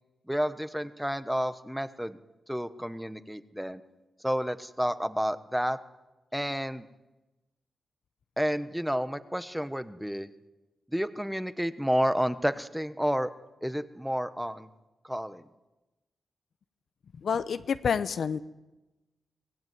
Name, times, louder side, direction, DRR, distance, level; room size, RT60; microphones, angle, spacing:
voice 1, 0.3-2.2 2.5-3.8 4.2-5.8 6.3-6.9 8.4-10.3 10.9-13.3 13.6-14.7 15.0-15.4, equal, ahead, 13 dB, 1.1 m, -30 dB
voice 2, 17.2-18.4, left 6 dB, 65° left, 12 dB, 0.9 m, -28 dB
25.0 x 19.0 x 9.4 m, 1.1 s
wide cardioid pair, 145°, 0 cm